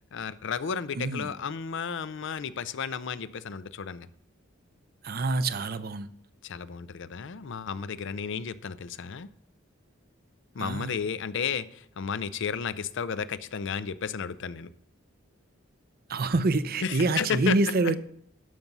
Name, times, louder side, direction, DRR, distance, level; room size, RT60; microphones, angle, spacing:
voice 1, 0.1-4.1 6.4-9.3 10.5-14.7 16.8-17.6, left 6 dB, 65° left, 0.5 m, -33 dB
voice 2, 1.0-1.3 5.0-6.1 10.6-11.0 16.1-18.0, right 3 dB, 50° right, 0.6 m, -26 dB
12.5 x 6.0 x 5.4 m
head